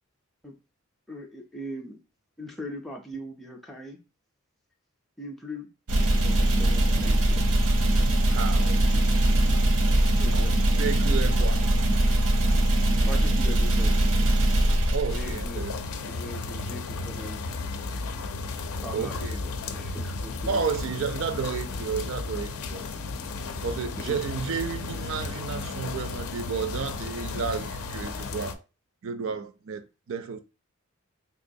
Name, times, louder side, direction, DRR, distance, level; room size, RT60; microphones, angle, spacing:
voice 1, 1.1-2.0 2.4-4.0 5.2-5.7 6.0-7.4 10.2-10.6 11.2-11.5 13.0-14.0 15.1-15.7 16.1-17.4 18.8-21.0 24.0-24.2, equal, ahead, 0.4 m, -40 dB
sound 1, 5.9-15.7, right 1 dB, 80° right, 0.8 m, -22 dB
voice 2, 8.3-9.0 10.2-10.5 10.8-11.7 14.9-15.9 18.8-19.4 20.5-22.8 23.6-28.6 29.0-30.4, right 5 dB, 60° right, 0.4 m, -32 dB
sound 2, 15.1-28.5, left 3 dB, 75° left, 0.4 m, -34 dB
3.6 x 2.9 x 2.6 m
head